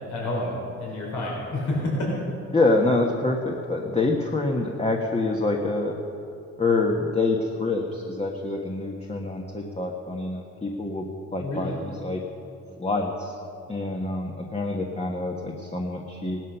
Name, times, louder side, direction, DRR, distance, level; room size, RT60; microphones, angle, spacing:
voice 1, 0.1-0.5 0.8-2.1 11.4-11.7, left 1 dB, 70° left, -3 dB, 4.2 m, -28 dB
voice 2, 2.5-6.0 6.6-12.2 12.8-13.3 13.7-16.4, left 2 dB, 20° left, 1 dB, 1.4 m, -26 dB
17.5 x 12.5 x 5.8 m, 2.7 s
cardioid pair, 90°, 30 cm